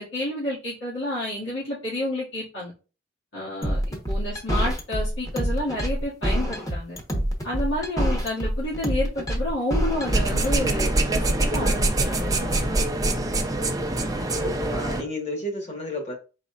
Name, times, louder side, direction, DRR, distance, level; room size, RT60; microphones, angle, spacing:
voice 1, 0.0-2.7 3.3-7.0 7.4-12.7, left 1 dB, 90° left, -8 dB, 2.1 m, -30 dB
sound 1, 3.6-10.6, equal, 20° left, 1.1 m, -26 dB
sound 2, 10.0-15.0, right 2 dB, 20° right, 0.6 m, -24 dB
voice 2, 14.4-16.1, left 1 dB, 35° left, 1 dB, 1.6 m, -32 dB
4.9 x 4.1 x 2.4 m, 0.33 s
head